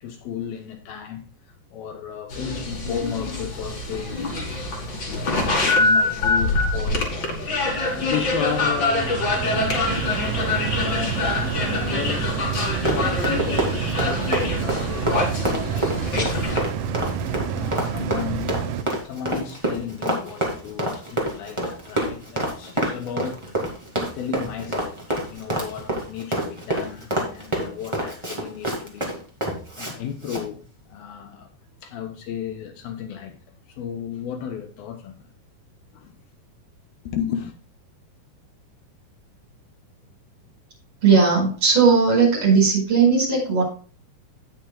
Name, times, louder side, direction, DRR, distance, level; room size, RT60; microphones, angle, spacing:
voice 1, 0.0-1.2 1.7-7.3 7.9-12.4 12.8-17.2 17.5-18.6 19.0-23.6 24.1-29.1 29.8-31.5 31.8-33.4 33.7-35.3 35.9-36.1 37.0-37.5, left 9 dB, 75° left, 2.7 m, -34 dB
sound 1, 2.3-16.6, left 2 dB, 35° left, 2.2 m, -25 dB
sound 2, 7.6-18.8, right 8 dB, 90° right, 1.8 m, -29 dB
Run, 12.6-29.9 30.2-30.4, right 1 dB, 15° right, 1.1 m, -27 dB
voice 2, 41.0-43.6, right 5 dB, 35° right, 6.0 m, -17 dB
18.0 x 6.1 x 2.3 m
omnidirectional pair, 4.5 m